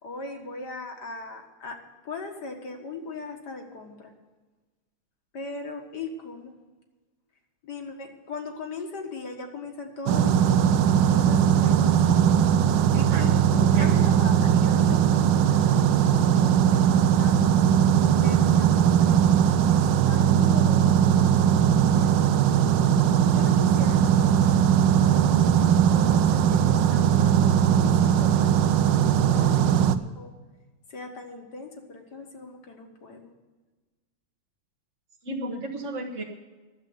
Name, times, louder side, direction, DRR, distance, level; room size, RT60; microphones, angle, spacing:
voice 1, 0.0-4.1 5.3-6.5 7.6-12.4 12.9-13.3 13.8-17.5 18.2-22.1 23.3-24.0 25.0-25.4 25.9-30.3 30.9-33.3, left 3 dB, 60° left, 3 dB, 2.1 m, -39 dB
sound 1, 10.1-30.0, right 9 dB, 75° right, 1.2 m, -20 dB
voice 2, 12.9-14.2 35.2-36.2, right 2 dB, 45° right, -3 dB, 1.4 m, -34 dB
11.5 x 7.6 x 9.3 m, 1.3 s
omnidirectional pair, 2.1 m